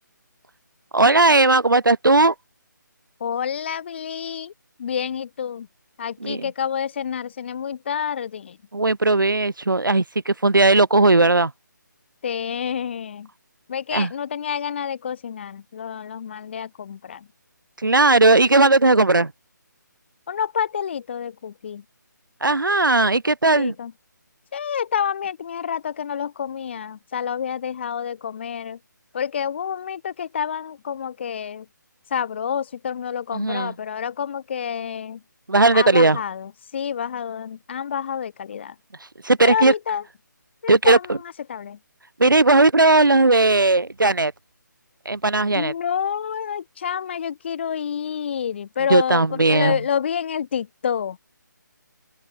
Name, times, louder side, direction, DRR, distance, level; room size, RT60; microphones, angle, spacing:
voice 1, 0.9-2.3 6.2-6.4 8.7-11.5 13.9-14.1 17.8-19.3 22.4-23.7 33.3-33.7 35.5-36.2 39.2-39.7 40.7-41.2 42.2-44.3 45.1-45.7 48.9-49.8, right 2 dB, 85° right, 0.8 m, -17 dB
voice 2, 3.2-4.5 4.8-5.7 6.0-8.6 12.2-13.3 13.7-17.3 20.3-21.8 23.5-23.9 24.5-28.8 29.1-31.7 32.1-35.2 35.7-38.7 39.4-40.0 40.6-41.8 45.5-51.2, left 8 dB, 35° left, 0.7 m, -28 dB
open air
figure-of-eight pair, 150°, 11 cm